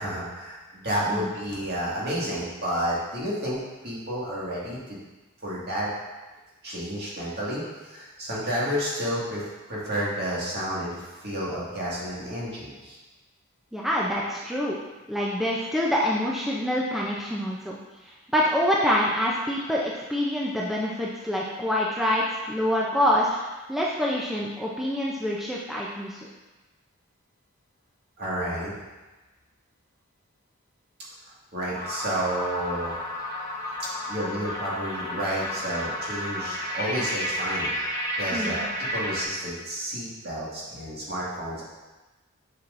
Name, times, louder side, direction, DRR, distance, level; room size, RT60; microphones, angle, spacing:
voice 1, 0.0-5.0 5.4-5.9 6.6-13.0 28.2-28.8 31.5-33.0 34.1-37.7 38.2-41.7, equal, 50° right, -6 dB, 1.9 m, -31 dB
voice 2, 13.7-14.8 15.1-17.8 18.0-26.3 38.3-38.6, equal, ahead, -5 dB, 0.5 m, -26 dB
sound 1, 31.7-39.2, left 1 dB, 15° left, 0.9 m, -32 dB
7.1 x 6.1 x 2.6 m, 1.2 s
head